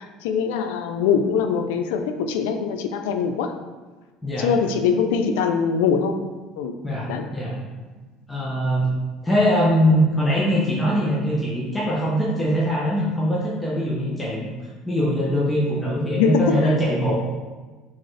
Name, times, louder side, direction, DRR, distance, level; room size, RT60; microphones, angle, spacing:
voice 1, 0.0-3.5 4.4-6.2 6.6-6.7 7.1-7.3 16.1-16.7, left 6 dB, 85° left, 7 dB, 0.4 m, -22 dB
voice 2, 6.8-7.6 8.3-8.9 9.2-14.5 14.8-17.2, equal, 15° left, -6 dB, 1.0 m, -22 dB
4.3 x 3.6 x 3.2 m, 1.3 s
supercardioid pair, 90°, 0 cm